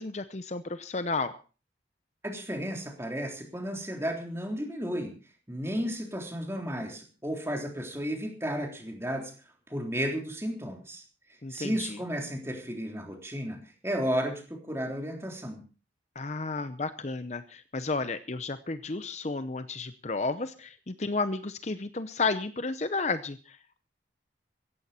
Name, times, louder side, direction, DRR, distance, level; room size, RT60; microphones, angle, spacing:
voice 1, 0.0-1.3 11.4-12.0 16.2-23.8, left 3 dB, 35° left, 12 dB, 0.7 m, -32 dB
voice 2, 2.2-5.1 5.5-9.3 9.7-11.0 11.5-13.6 13.8-15.6, equal, 15° right, 2 dB, 3.5 m, -33 dB
16.5 x 14.5 x 4.3 m, 0.36 s
head